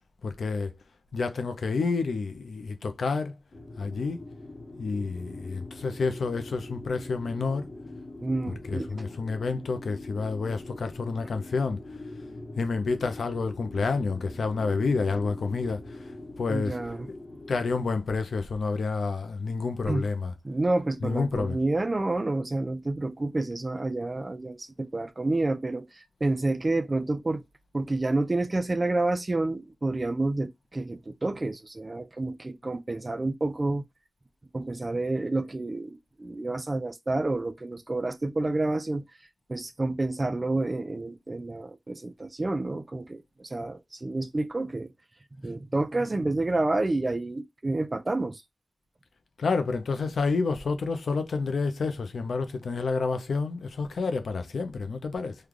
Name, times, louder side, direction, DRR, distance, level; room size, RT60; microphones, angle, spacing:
voice 1, 0.2-0.7 1.1-3.3 3.8-4.2 4.8-7.7 8.5-11.8 12.6-16.1 16.4-16.8 17.5-20.3 21.0-21.6 49.4-55.3, left 4 dB, 80° left, 0.6 m, -29 dB
sound 1, 3.5-17.8, left 2 dB, 25° left, 1.0 m, -43 dB
voice 2, 8.2-9.0 16.5-17.1 19.9-20.1 20.4-27.4 27.7-33.8 34.5-39.0 39.5-44.9 45.3-48.4, right 2 dB, 30° right, 0.4 m, -29 dB
3.2 x 2.3 x 3.6 m
wide cardioid pair, 85°, 0 cm